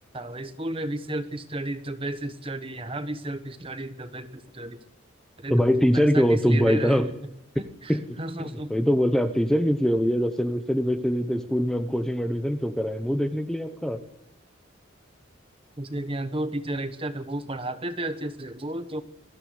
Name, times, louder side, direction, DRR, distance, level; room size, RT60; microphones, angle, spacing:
voice 1, 0.1-4.8 5.4-7.1 7.6-8.7 15.8-19.0, right 1 dB, 25° right, 10 dB, 1.4 m, -33 dB
voice 2, 5.5-7.1 7.9-14.0, equal, 5° left, 7 dB, 0.9 m, -23 dB
22.0 x 15.5 x 9.6 m, 0.80 s
head